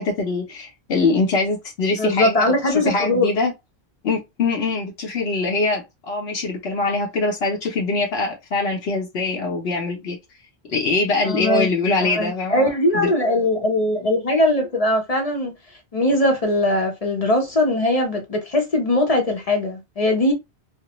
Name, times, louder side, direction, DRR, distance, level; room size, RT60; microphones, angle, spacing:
voice 1, 0.0-3.5 4.0-10.2 10.7-13.1, left 3 dB, 75° left, 1.0 m, -23 dB
voice 2, 2.0-3.3 11.2-11.7 12.0-15.5 15.9-20.3, left 1 dB, 40° left, 0.7 m, -20 dB
3.1 x 2.1 x 3.0 m
omnidirectional pair, 1.1 m